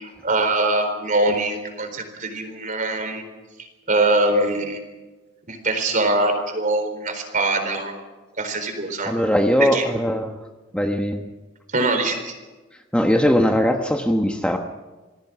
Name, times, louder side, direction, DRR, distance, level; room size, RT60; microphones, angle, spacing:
voice 1, 0.0-3.2 3.9-4.8 5.5-7.9 8.4-9.1 9.6-9.9 11.7-12.3, right 2 dB, 40° right, 7 dB, 4.1 m, -23 dB
voice 2, 9.1-10.3 10.7-11.2 12.9-14.6, equal, 5° left, 3 dB, 1.2 m, -20 dB
27.5 x 19.5 x 6.1 m, 1.2 s
head